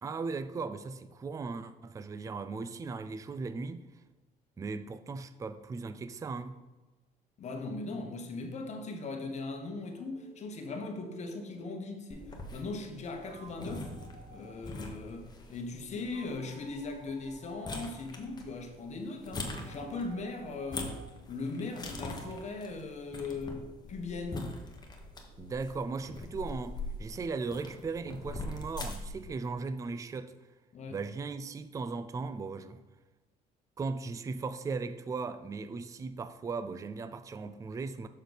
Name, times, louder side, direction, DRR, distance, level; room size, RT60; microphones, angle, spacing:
voice 1, 0.0-3.8 4.6-6.6 25.4-30.3 30.9-32.8 33.8-38.1, right 4 dB, 20° right, 0.4 m, -37 dB
voice 2, 7.4-13.9 14.3-21.0 21.3-24.5 30.7-31.0, left 3 dB, 45° left, 1.1 m, -39 dB
sound 1, 9.9-11.8 12.8-14.6 16.0-18.1 19.2-21.1 22.0-22.6, right 6 dB, 80° right, 1.2 m, -55 dB
sound 2, 12.1-29.3, left 2 dB, 25° left, 1.2 m, -43 dB
6.6 x 6.4 x 4.0 m
cardioid pair, 110°, 17 cm